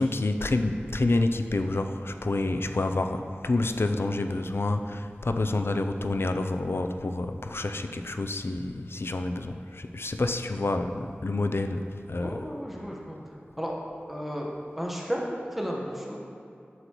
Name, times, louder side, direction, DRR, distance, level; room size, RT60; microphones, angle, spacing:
voice 1, 0.0-12.4, left 2 dB, 70° left, 7 dB, 0.4 m, -28 dB
voice 2, 12.1-13.2 13.6-13.7 14.1-16.2, equal, 5° right, -2 dB, 1.1 m, -33 dB
7.9 x 6.7 x 3.0 m, 2.6 s
wide cardioid pair, 45°, 4 cm